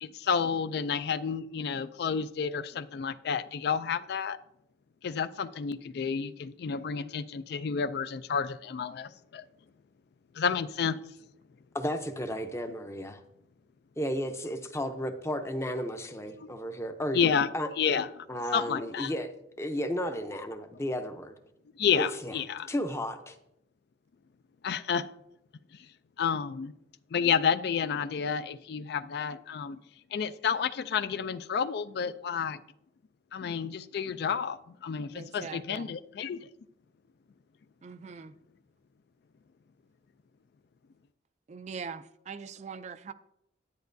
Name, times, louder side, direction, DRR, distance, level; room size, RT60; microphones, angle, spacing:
voice 1, 0.0-4.4 5.0-9.4 10.4-11.0 16.4-16.5 17.1-17.5 17.8-18.3 18.5-19.1 21.8-22.7 24.6-25.1 26.2-26.7 27.1-29.8 30.1-32.6 33.3-36.5, left 6 dB, 60° left, 0.3 m, -30 dB
voice 2, 11.7-13.2 14.0-17.3 17.5-17.7 18.3-21.3 22.0-22.3 22.7-23.4, equal, 15° left, 0.6 m, -33 dB
voice 3, 35.1-35.9 37.8-38.3 41.5-43.1, right 5 dB, 35° right, 0.3 m, -42 dB
10.0 x 9.2 x 2.6 m
head